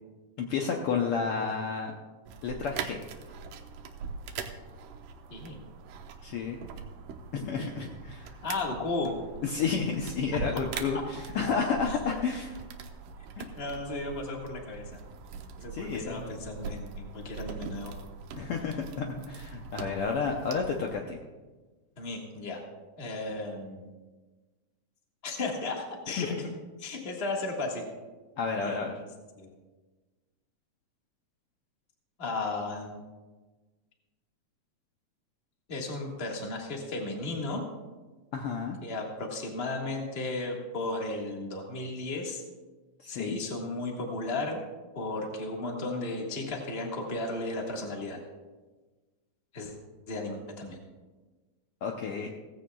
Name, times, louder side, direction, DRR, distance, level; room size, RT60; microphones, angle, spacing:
voice 1, 0.4-1.9 2.4-3.0 6.2-6.6 7.3-8.3 9.4-12.5 13.4-13.5 15.7-16.3 18.4-21.2 26.2-26.5 28.4-28.9 38.3-38.8 43.0-43.4 51.8-52.3, left 5 dB, 85° left, 1 dB, 1.2 m, -31 dB
sound 1, 2.3-21.0, right 5 dB, 85° right, 2.3 m, -42 dB
voice 2, 5.3-5.6 8.4-9.2 10.9-11.0 11.9-12.2 13.5-15.0 15.6-17.9 22.0-22.6 23.0-23.9 25.2-26.3 26.8-27.9 28.6-29.1 29.4-29.5 32.2-33.0 35.7-37.6 38.8-42.4 43.1-44.6 44.9-48.2 49.5-49.7 50.1-50.8, left 2 dB, 30° left, 0 dB, 1.1 m, -35 dB
16.5 x 15.0 x 2.3 m, 1.3 s
omnidirectional pair, 3.7 m